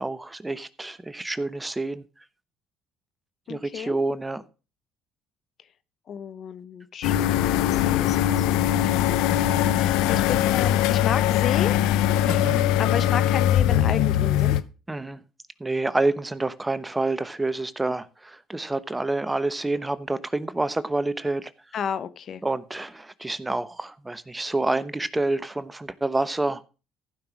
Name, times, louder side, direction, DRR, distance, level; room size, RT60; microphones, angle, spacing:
voice 1, 0.0-2.0 3.5-4.4 12.2-12.6 14.9-15.2 15.6-21.5 22.4-26.6, right 2 dB, 15° right, 1.0 m, -28 dB
voice 2, 3.5-4.0 6.1-11.8 12.8-14.6 21.7-22.4, left 8 dB, 55° left, 0.9 m, -32 dB
sound 1, 7.0-14.6, left 11 dB, 75° left, 0.7 m, -21 dB
15.0 x 5.9 x 6.1 m
supercardioid pair, 70°, 0 cm